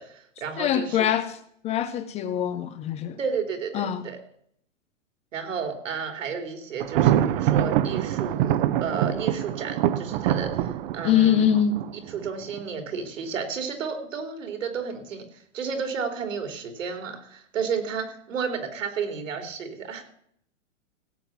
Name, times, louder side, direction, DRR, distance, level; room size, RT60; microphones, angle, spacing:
voice 1, 0.0-1.1 3.2-4.2 5.3-11.5 12.1-20.0, right 6 dB, 75° right, 3.6 m, -32 dB
voice 2, 0.6-1.4 1.6-3.2 3.7-4.1 11.0-11.8, left 9 dB, 15° left, 0.5 m, -23 dB
Thunder, 6.8-12.6, right 11 dB, 45° right, 0.9 m, -25 dB
17.0 x 7.9 x 5.9 m
hypercardioid pair, 125°, 38 cm